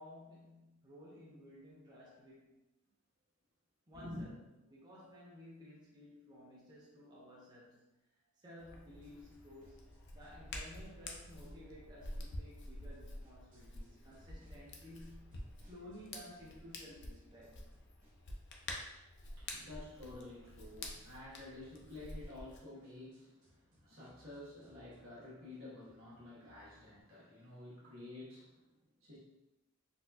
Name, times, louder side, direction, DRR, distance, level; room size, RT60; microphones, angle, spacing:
voice 1, 0.0-2.6 3.9-4.3 4.7-7.9 8.4-9.8 10.1-17.7, left 1 dB, 20° right, -7 dB, 0.6 m, -55 dB
voice 2, 3.9-4.3 19.3-29.2, left 2 dB, 70° right, -7 dB, 1.3 m, -51 dB
Hands, 8.6-22.6, left 2 dB, 55° left, 0.5 m, -49 dB
sound 1, 9.0-11.7 12.0-16.5 16.8-27.0, left 1 dB, 40° right, 1.0 m, -68 dB
4.1 x 2.4 x 2.3 m, 0.95 s
head